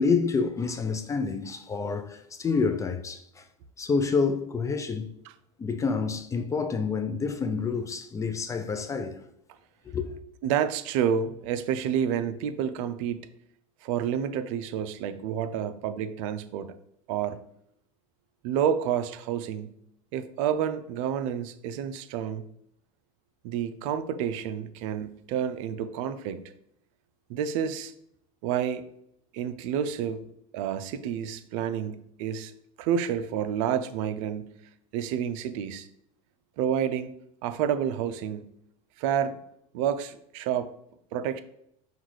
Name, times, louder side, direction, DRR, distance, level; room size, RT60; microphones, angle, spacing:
voice 1, 0.0-3.5 3.8-5.1 5.6-9.2 9.9-10.1, left 4 dB, 15° left, 0.4 m, -28 dB
voice 2, 10.4-13.2 13.8-16.7 17.1-17.4 18.4-19.8 20.1-22.5 23.4-26.4 27.3-27.9 28.4-28.8 29.3-30.2 30.5-32.5 32.8-34.6 34.9-35.9 36.6-37.1 37.4-38.5 39.0-39.4 39.7-40.7 41.1-41.4, right 8 dB, 70° right, 0.5 m, -29 dB
5.7 x 2.4 x 3.2 m
supercardioid pair, 115°, 18 cm